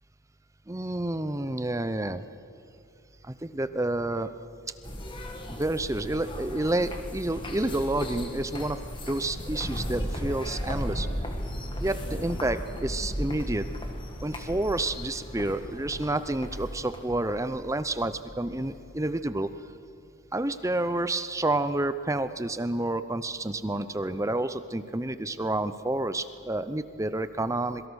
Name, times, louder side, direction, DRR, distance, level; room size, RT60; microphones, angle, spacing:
voice 1, 0.7-2.2 3.4-4.3 5.6-8.8 9.1-11.1 11.8-13.7 14.2-19.5 20.3-27.8, right 2 dB, 15° right, 12 dB, 0.6 m, -29 dB
sound 1, 4.8-19.2, equal, 20° left, 2.0 m, -36 dB
26.5 x 23.0 x 6.4 m, 2.5 s
head